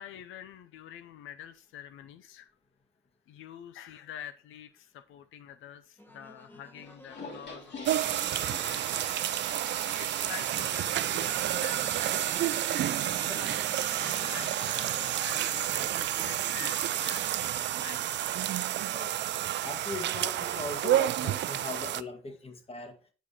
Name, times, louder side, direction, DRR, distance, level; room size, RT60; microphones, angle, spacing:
voice 1, 0.0-2.5 3.3-8.2 8.5-9.0 10.0-12.2 12.7-18.0, left 10 dB, 85° left, 0.6 m, -47 dB
sound 1, 6.0-17.8, equal, 10° left, 1.4 m, -53 dB
sound 2, 6.8-19.3, left 3 dB, 60° left, 3.0 m, -46 dB
sound 3, 7.9-22.0, right 13 dB, 65° right, 0.5 m, -30 dB
voice 2, 18.9-19.2 19.6-23.0, left 3 dB, 30° left, 1.8 m, -40 dB
9.1 x 4.9 x 4.3 m
cardioid pair, 90°, 20 cm